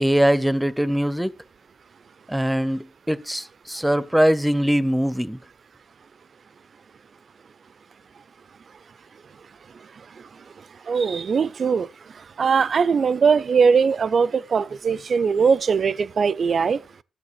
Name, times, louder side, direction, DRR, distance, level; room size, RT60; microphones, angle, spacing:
voice 1, 0.0-1.3 2.3-5.4, equal, 5° right, 0.6 m, -21 dB
voice 2, 10.9-11.9 12.4-16.8, right 5 dB, 55° right, 0.4 m, -20 dB
12.0 x 7.6 x 3.0 m
hypercardioid pair, 45°, 0 cm